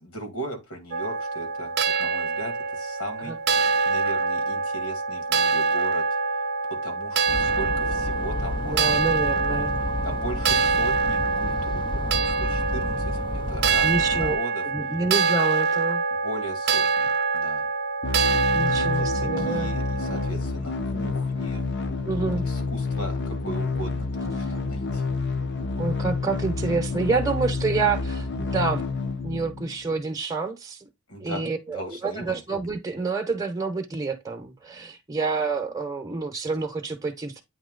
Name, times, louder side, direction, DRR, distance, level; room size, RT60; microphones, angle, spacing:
voice 1, 0.0-1.7 2.0-3.4 3.8-6.0 6.7-9.0 9.4-9.7 10.0-14.6 16.2-17.7 18.6-21.6 22.5-25.2 31.1-32.4, right 1 dB, 80° left, 2.5 m, -38 dB
sound 1, 0.9-20.3, right 4 dB, 50° right, 0.6 m, -25 dB
sound 2, 7.3-14.4, left 1 dB, 20° left, 0.5 m, -31 dB
voice 2, 8.6-9.7 13.8-14.4 14.7-16.0 18.5-19.8 22.0-22.5 25.8-28.9 29.2-30.8 31.2-37.4, right 4 dB, 15° right, 0.8 m, -28 dB
sound 3, 18.0-30.0, left 3 dB, 50° left, 0.8 m, -29 dB
8.8 x 3.0 x 3.8 m
head